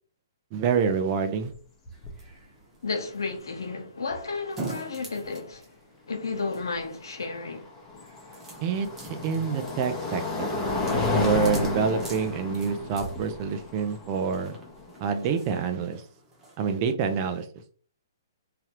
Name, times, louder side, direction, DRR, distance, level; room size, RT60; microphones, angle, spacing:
voice 1, 0.5-1.5 8.6-10.9 11.1-14.5 15.0-16.0 16.6-17.5, right 6 dB, 35° right, 0.6 m, -27 dB
sound 1, 1.4-1.5 1.9-2.3 4.1-4.2 7.2-15.3, left 2 dB, 20° left, 0.9 m, -31 dB
Onion rolling, 1.9-16.6, right 2 dB, 15° right, 1.1 m, -46 dB
voice 2, 2.8-5.8 6.1-7.7, left 4 dB, 85° left, 0.8 m, -32 dB
3.3 x 2.3 x 2.9 m
hypercardioid pair, 135°, 2 cm